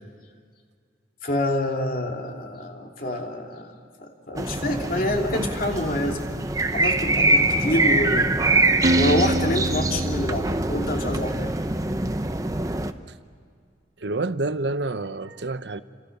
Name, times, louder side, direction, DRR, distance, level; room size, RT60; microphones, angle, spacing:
voice 1, 1.2-3.7 4.0-6.2 6.7-11.6, left 1 dB, 50° left, 2 dB, 2.9 m, -27 dB
sound 1, 4.4-12.9, right 2 dB, 20° right, 0.8 m, -24 dB
Acoustic guitar, 8.8-11.8, right 1 dB, 50° right, 1.3 m, -26 dB
voice 2, 14.0-15.8, right 2 dB, 70° right, 12 dB, 0.8 m, -28 dB
30.0 x 26.5 x 6.7 m, 2.1 s
head